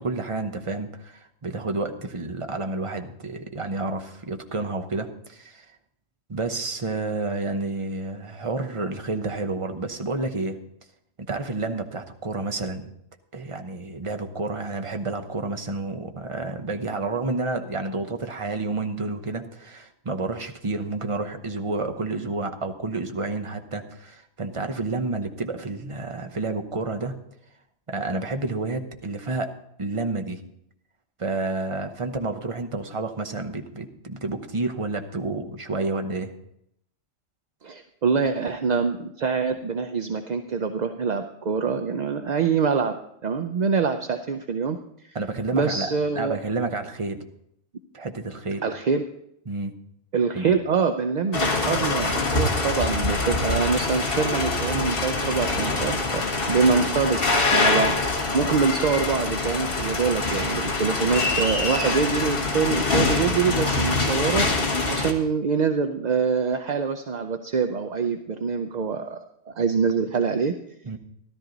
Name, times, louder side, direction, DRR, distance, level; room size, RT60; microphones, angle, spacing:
voice 1, 0.0-5.7 6.3-10.6 11.2-12.9 13.3-27.1 27.9-30.4 31.2-36.3 45.1-47.2 47.9-48.6 49.5-49.7 50.3-50.5 70.8-71.0, right 3 dB, 30° right, 5 dB, 0.9 m, -30 dB
voice 2, 37.6-42.9 43.2-45.2 45.5-46.4 48.6-49.0 50.1-56.2 56.5-57.2 57.5-69.2 69.5-70.5, right 5 dB, 50° right, 7 dB, 0.6 m, -25 dB
sound 1, 51.3-65.1, left 3 dB, 50° left, 1.6 m, -24 dB
13.5 x 12.5 x 3.9 m, 0.75 s
omnidirectional pair, 1.3 m